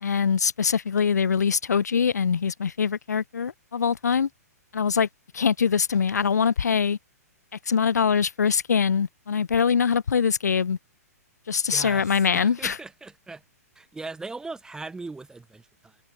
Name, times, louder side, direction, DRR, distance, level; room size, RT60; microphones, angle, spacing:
voice 1, 0.0-4.3 4.7-5.1 5.3-7.0 7.7-10.8 11.5-12.8, left 6 dB, 85° left, 0.8 m, -23 dB
voice 2, 11.7-12.1 12.3-13.4 13.8-16.0, right 3 dB, 5° right, 2.3 m, -39 dB
hypercardioid pair, 125°, 9 cm